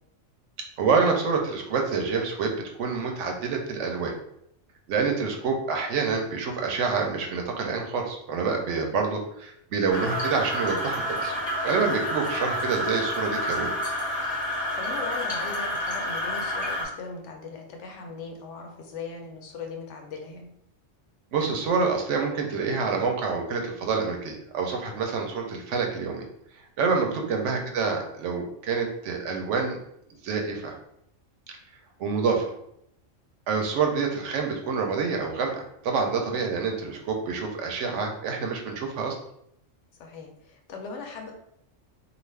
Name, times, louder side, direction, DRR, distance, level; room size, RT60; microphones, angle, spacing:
voice 1, 0.8-4.1 4.9-13.7 21.3-26.3 26.8-29.8 30.2-30.8 32.0-32.5 33.5-39.2, right 5 dB, 75° right, 3 dB, 0.9 m, -27 dB
sound 1, 9.9-16.9, equal, 40° left, 0.7 m, -29 dB
voice 2, 14.7-20.5 27.0-27.5 40.0-41.3, left 4 dB, 70° left, 2 dB, 0.8 m, -39 dB
2.4 x 2.3 x 3.2 m, 0.74 s
omnidirectional pair, 1.3 m